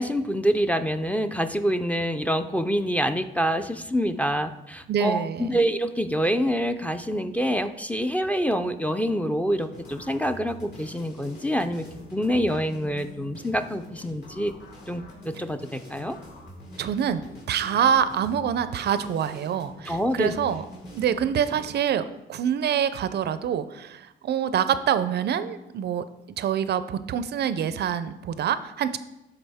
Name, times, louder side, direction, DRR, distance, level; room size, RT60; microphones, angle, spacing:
voice 1, 0.0-11.9 12.1-14.6 14.9-16.2 19.9-20.3, equal, 5° left, 8 dB, 0.4 m, -26 dB
voice 2, 4.9-5.5 16.8-17.2 17.5-20.6 20.9-26.0 26.4-29.0, right 8 dB, 55° right, 13 dB, 0.4 m, -25 dB
sound 1, 9.5-21.7, left 1 dB, 55° left, 2.7 m, -45 dB
11.5 x 4.0 x 3.5 m, 0.94 s
cardioid pair, 90°, 20 cm